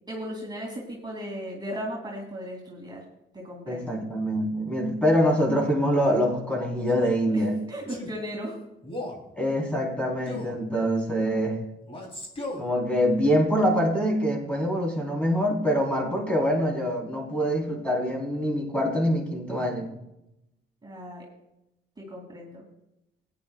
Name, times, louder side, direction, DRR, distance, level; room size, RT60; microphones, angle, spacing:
voice 1, 0.1-3.0 3.3-4.0 7.3-8.6 20.8-21.2 22.0-22.6, equal, 20° right, -3 dB, 2.8 m, -36 dB
voice 2, 3.7-7.5 9.4-11.6 12.6-19.9, equal, 5° left, -1 dB, 4.0 m, -25 dB
Male speech man speaking, 6.8-7.2 7.9-8.2 8.8-9.2 10.3-10.6 11.9-12.7, left 1 dB, 25° left, 3.6 m, -36 dB
16.5 x 10.0 x 2.4 m, 0.88 s
cardioid pair, 90°, 20 cm